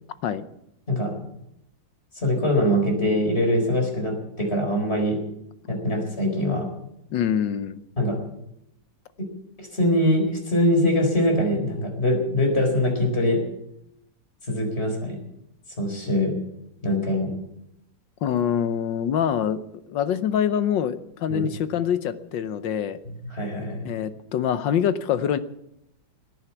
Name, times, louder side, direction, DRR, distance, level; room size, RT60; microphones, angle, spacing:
voice 1, 2.1-5.2 5.7-6.7 8.0-8.2 9.2-9.3 9.6-13.4 14.5-15.2 15.8-16.4 16.8-17.3 21.3-21.5 23.3-23.9, left 1 dB, 35° left, 3 dB, 4.6 m, -23 dB
voice 2, 7.1-7.8 18.2-19.6 19.9-23.0 23.8-25.4, left 9 dB, 80° left, 13 dB, 1.6 m, -25 dB
18.0 x 10.5 x 7.2 m, 0.80 s
omnidirectional pair, 2.0 m